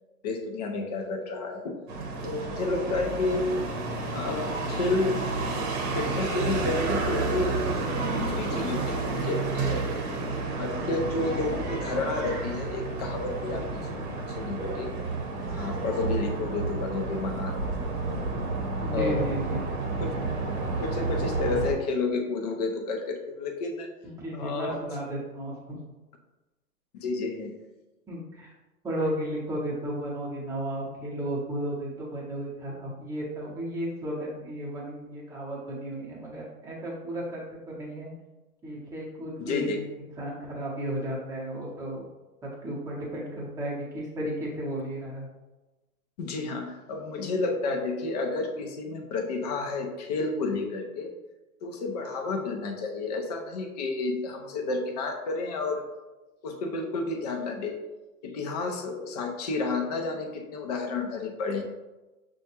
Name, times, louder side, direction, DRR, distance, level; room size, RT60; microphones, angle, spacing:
voice 1, 0.2-1.8 2.2-3.5 4.1-5.1 5.9-9.8 10.5-14.9 15.5-17.6 18.9-19.3 20.0-20.3 20.8-23.9 24.3-24.8 26.9-27.5 39.4-39.8 46.2-51.1 51.6-55.9 56.4-57.8 58.2-61.6, left 3 dB, 30° left, 3 dB, 0.4 m, -31 dB
sound 1, 1.9-21.7, right 3 dB, 45° right, 0.9 m, -30 dB
voice 2, 18.8-19.7 24.0-25.8 28.1-28.5 28.8-38.1 38.6-39.8 40.2-42.0 42.4-45.3, right 1 dB, 5° right, -5 dB, 0.7 m, -34 dB
6.0 x 2.3 x 2.8 m, 1.1 s
hypercardioid pair, 120°, 46 cm